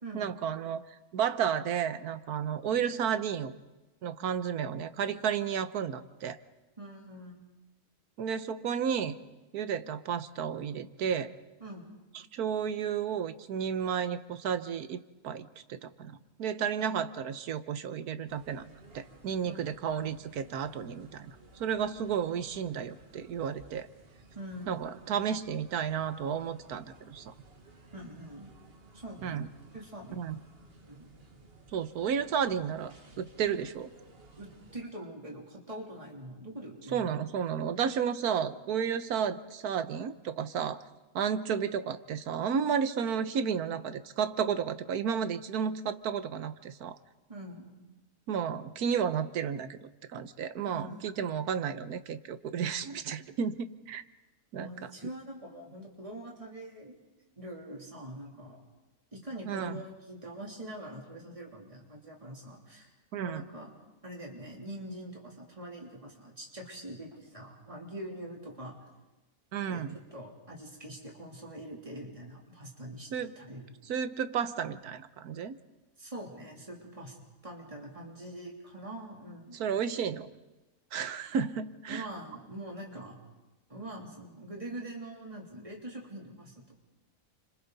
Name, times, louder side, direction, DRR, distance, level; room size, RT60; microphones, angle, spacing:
voice 1, 0.1-3.5 4.0-6.4 8.2-9.1 9.5-11.3 12.3-15.0 15.2-18.7 18.9-21.3 21.5-23.9 24.7-27.3 29.2-29.5 30.1-30.4 31.7-33.9 36.9-40.8 41.1-47.0 48.3-53.5 53.9-54.0 54.5-54.7 59.5-59.8 63.1-63.4 69.5-70.0 73.1-73.3 73.9-75.5 79.5-80.3 80.9-82.1, right 7 dB, 85° right, 12 dB, 1.4 m, -32 dB
voice 2, 6.8-7.4 11.6-11.9 19.4-19.6 24.4-25.2 27.9-28.5 28.9-29.4 29.7-30.2 30.9-31.1 34.4-37.1 37.6-37.9 47.3-47.9 50.6-51.3 54.6-57.0 57.4-58.6 59.1-62.9 63.2-63.7 64.0-68.7 69.7-69.8 70.1-73.7 76.0-77.2 77.4-79.8 81.9-83.2 83.7-86.8, right 1 dB, 20° right, -1 dB, 3.4 m, -44 dB
sound 1, 18.3-34.8, right 2 dB, 40° right, 1.8 m, -56 dB
30.0 x 26.0 x 4.1 m, 1.1 s
omnidirectional pair, 1.6 m